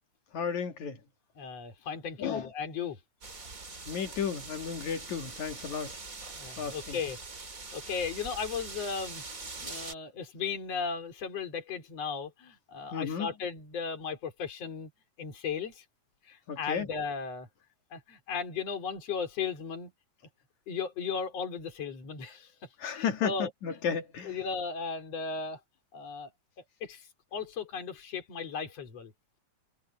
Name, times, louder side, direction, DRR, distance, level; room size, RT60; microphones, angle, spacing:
voice 1, 0.3-1.0 2.2-2.5 3.9-6.0 6.6-7.0 12.9-13.3 16.5-16.9 22.8-24.4, left 7 dB, 70° left, 3.3 m, -33 dB
voice 2, 1.4-3.0 3.4-3.8 6.3-7.2 7.7-9.2 9.6-14.9 15.2-15.8 16.3-17.5 17.9-19.9 20.7-22.5 22.9-23.8 24.2-25.6 25.9-26.3 26.8-29.1, left 6 dB, 55° left, 4.7 m, -36 dB
sound 1, 3.2-9.9, right 3 dB, 25° right, 3.1 m, -43 dB
omnidirectional pair, 3.5 m